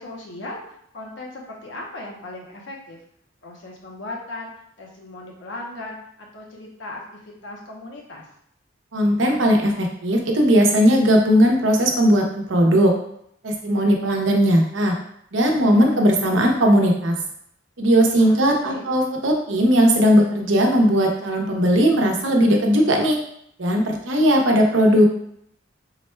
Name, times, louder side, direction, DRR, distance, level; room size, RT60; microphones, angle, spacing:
voice 1, 0.0-3.0 3.4-4.5 4.8-7.0 7.4-8.2 18.2-18.9, left 2 dB, 70° left, -2 dB, 0.7 m, -37 dB
voice 2, 8.9-12.9 13.4-14.9 15.3-17.1 17.8-23.2 23.6-25.0, equal, 85° right, 1 dB, 0.7 m, -18 dB
3.9 x 2.2 x 4.3 m, 0.70 s
head